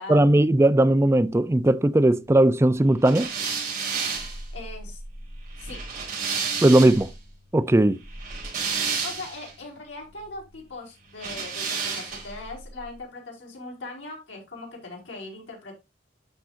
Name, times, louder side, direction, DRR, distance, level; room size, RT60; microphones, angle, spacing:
voice 1, 0.0-3.3 6.6-7.1 7.5-8.0, right 1 dB, 15° right, 0.4 m, -18 dB
sound 1, 3.0-7.1 8.1-9.5 11.2-12.4, right 5 dB, 45° right, 5.3 m, -31 dB
voice 2, 4.5-5.0 5.6-5.8 9.0-15.8, left 2 dB, 90° left, 4.7 m, -39 dB
12.0 x 5.7 x 2.5 m
head